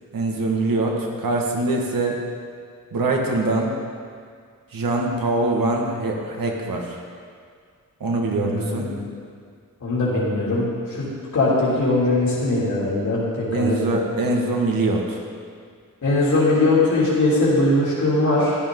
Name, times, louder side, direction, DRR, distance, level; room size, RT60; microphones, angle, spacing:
voice 1, 0.1-2.2 2.9-3.7 4.7-7.0 8.0-8.9 13.5-15.2, right 2 dB, 85° right, 0 dB, 1.8 m, -23 dB
voice 2, 8.3-9.0 9.8-11.1 11.3-13.8 16.0-18.6, left 2 dB, 60° left, -8 dB, 3.1 m, -20 dB
13.5 x 12.5 x 3.8 m, 2.1 s
wide cardioid pair, 175°, 33 cm